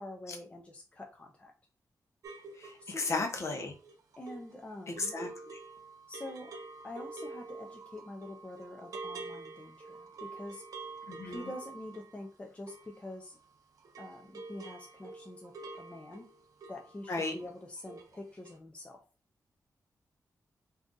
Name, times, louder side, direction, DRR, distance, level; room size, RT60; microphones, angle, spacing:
voice 1, 0.0-1.5 2.8-3.3 4.2-5.2 6.1-6.6 6.8-10.6 11.2-13.4 14.0-15.5 15.8-16.3 16.7-19.0, left 1 dB, 20° left, 1 dB, 0.5 m, -45 dB
sound 1, 2.2-13.5 13.8-17.5 17.8-18.2 18.5-18.6, right 3 dB, 70° right, 0.6 m, -47 dB
voice 2, 2.6-3.7 4.9-5.6 11.1-11.5 17.1-17.3, left 3 dB, 50° left, 4 dB, 0.8 m, -35 dB
2.6 x 2.4 x 3.6 m, 0.35 s
wide cardioid pair, 160°, 6 cm